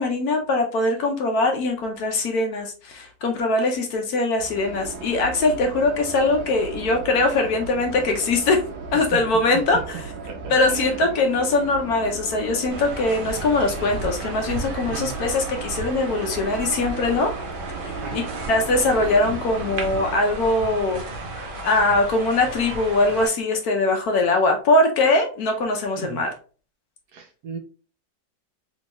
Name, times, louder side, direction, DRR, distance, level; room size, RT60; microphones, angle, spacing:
voice 1, 0.0-8.6 8.9-10.0 10.5-17.3 17.8-18.2 18.5-21.0 21.3-26.3, left 2 dB, 65° left, 4 dB, 1.1 m, -22 dB
sound 1, 4.4-20.2, right 5 dB, 85° right, 1.4 m, -36 dB
voice 2, 10.3-11.1 14.8-15.1 18.0-18.3 26.0-26.2 27.1-27.6, right 6 dB, 65° right, 3 dB, 1.3 m, -36 dB
sound 2, 12.7-23.3, right 2 dB, 45° right, 0.7 m, -34 dB
3.5 x 3.0 x 2.9 m, 0.39 s
omnidirectional pair, 1.9 m